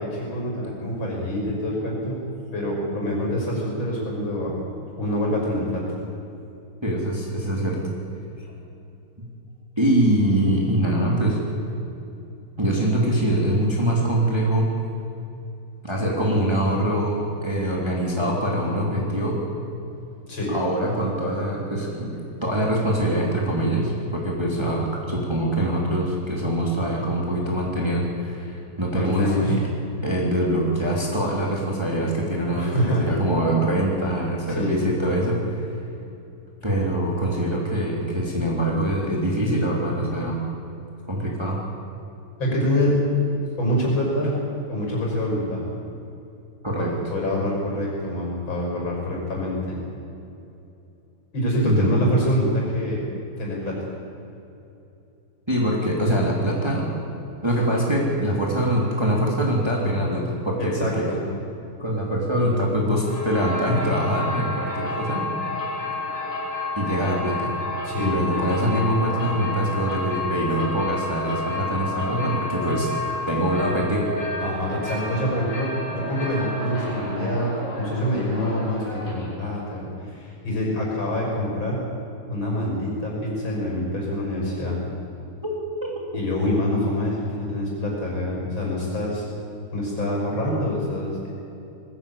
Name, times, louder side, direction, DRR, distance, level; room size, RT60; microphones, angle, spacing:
voice 1, 0.0-2.2 2.5-4.5 5.0-5.8 20.3-20.5 28.9-29.6 32.5-33.1 34.5-34.8 42.4-43.0 43.6-44.4 44.7-45.6 47.1-49.8 51.3-53.0 53.4-53.9 60.8-61.2 67.8-68.1 74.4-81.8 82.3-84.8 86.1-89.3 89.7-91.3, equal, 60° left, -2 dB, 6.8 m, -25 dB
voice 2, 6.8-7.8 9.2-9.3 9.8-11.4 12.6-14.7 15.8-19.4 20.5-29.6 30.0-35.6 36.6-40.4 41.1-41.6 46.6-46.9 51.6-51.9 55.5-56.8 57.4-61.0 61.8-65.3 66.8-67.5 68.0-72.9 73.3-74.1 85.4-85.5 85.9-86.2, right 1 dB, 10° right, -2 dB, 3.1 m, -24 dB
sound 1, 63.0-79.4, left 2 dB, 30° left, 7.2 m, -30 dB
20.0 x 16.0 x 8.7 m, 2.8 s
omnidirectional pair, 2.3 m